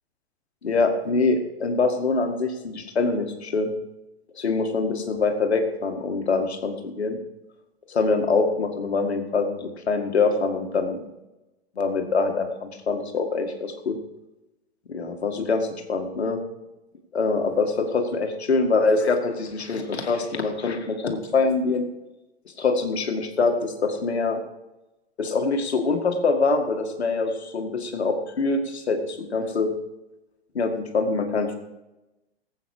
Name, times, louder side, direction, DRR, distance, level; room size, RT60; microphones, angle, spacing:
voice 1, 0.6-3.7 4.4-7.2 7.9-11.0 11.8-14.0 14.9-16.4 17.1-21.9 22.6-24.4 25.2-29.7 30.5-31.5, left 3 dB, 85° left, 5 dB, 2.1 m, -24 dB
18.0 x 8.6 x 4.9 m, 1.0 s
hypercardioid pair, 110°, 32 cm